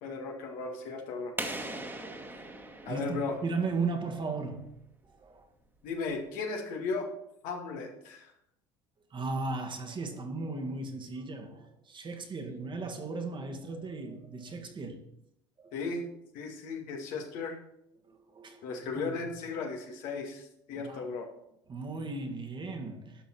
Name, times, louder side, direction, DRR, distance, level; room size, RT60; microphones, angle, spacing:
voice 1, 0.0-1.3 2.9-3.4 5.8-7.1 7.4-8.3 15.7-16.0 16.3-17.6 18.6-21.3, left 4 dB, 65° left, 2.2 m, -36 dB
sound 1, 1.4-4.0, right 2 dB, 15° right, 1.9 m, -40 dB
voice 2, 1.7-2.5 2.9-4.7 5.2-5.5 9.1-15.0 15.6-15.7 18.1-19.1 20.8-21.1 21.7-23.2, right 3 dB, 35° right, 1.8 m, -36 dB
11.5 x 6.1 x 4.5 m
hypercardioid pair, 70°, 15 cm